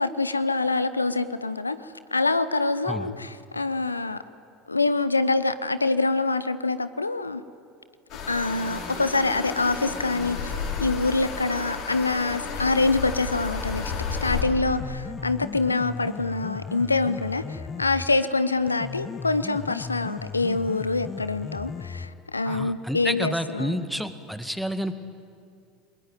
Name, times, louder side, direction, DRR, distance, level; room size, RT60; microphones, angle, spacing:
voice 1, 0.0-4.2 4.7-7.4 8.3-10.5 10.8-23.8, left 3 dB, 85° left, 14 dB, 0.8 m, -25 dB
sound 1, 8.1-14.4, left 5 dB, 55° left, 5.6 m, -32 dB
Piano, 14.5-22.5, left 6 dB, 30° left, 1.0 m, -37 dB
voice 2, 22.5-24.9, equal, ahead, 10 dB, 1.9 m, -29 dB
29.5 x 21.5 x 9.2 m, 2.3 s
figure-of-eight pair, 75°, 0 cm